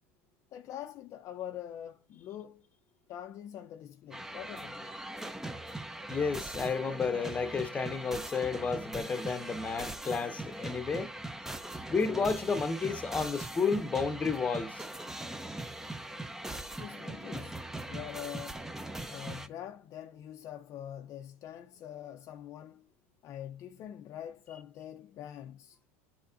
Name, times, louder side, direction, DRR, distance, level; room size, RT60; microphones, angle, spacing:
voice 1, 0.5-2.6 3.1-5.0 16.8-17.6 17.9-18.7 19.1-22.9 23.2-25.8, left 10 dB, 45° left, 0.5 m, -44 dB
sound 1, 4.1-19.5, right 1 dB, 5° right, 0.5 m, -41 dB
voice 2, 6.1-11.1 11.9-14.8, left 5 dB, 20° left, 0.8 m, -31 dB
10.0 x 4.1 x 2.5 m
supercardioid pair, 110°, 7 cm